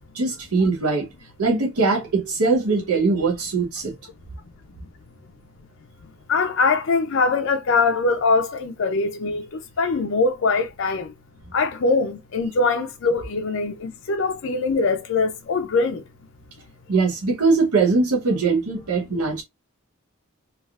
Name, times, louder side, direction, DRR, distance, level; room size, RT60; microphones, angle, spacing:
voice 1, 0.1-1.1 1.4-3.9 16.9-19.4, right 4 dB, 85° right, 0.8 m, -21 dB
voice 2, 6.3-11.1 11.5-16.0, left 4 dB, 60° left, 0.4 m, -22 dB
3.3 x 2.3 x 2.3 m
head